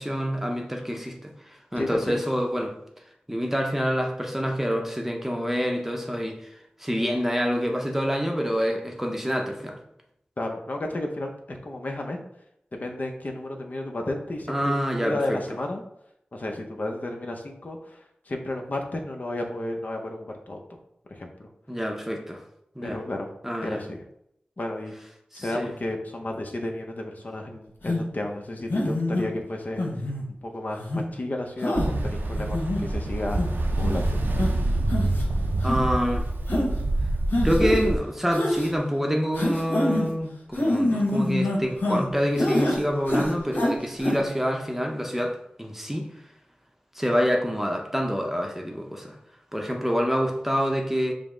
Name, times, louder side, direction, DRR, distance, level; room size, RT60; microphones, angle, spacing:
voice 1, 0.0-1.3 1.7-2.7 3.3-9.8 14.5-15.4 21.7-22.4 22.8-23.0 23.4-23.8 25.3-25.7 35.6-36.3 37.4-46.1 47.0-49.2 49.5-51.1, equal, 10° right, 2 dB, 0.6 m, -27 dB
voice 2, 1.8-2.1 10.4-12.2 12.7-15.8 16.3-20.8 21.1-21.5 22.8-23.3 23.6-24.0 24.6-24.9 25.3-29.8 30.4-30.9 31.1-33.4 33.8-34.2, left 1 dB, 55° left, 2 dB, 0.6 m, -32 dB
sound 1, 27.9-28.0 28.7-29.3 29.8-30.2 30.8-31.0 31.6-31.9 32.4-32.8 33.4-33.5 33.8-34.0 34.4-34.5 34.9-35.2 35.6-35.8 36.5-36.7 37.3-37.8 38.3-38.7 39.3-40.1 40.5-42.1 42.4-42.8 43.1-43.7 44.0-44.2, left 1 dB, 90° left, 0.9 m, -25 dB
Ocean, 31.7-38.0, right 2 dB, 85° right, 0.5 m, -26 dB
5.1 x 2.0 x 3.6 m, 0.77 s
wide cardioid pair, 60°, 3 cm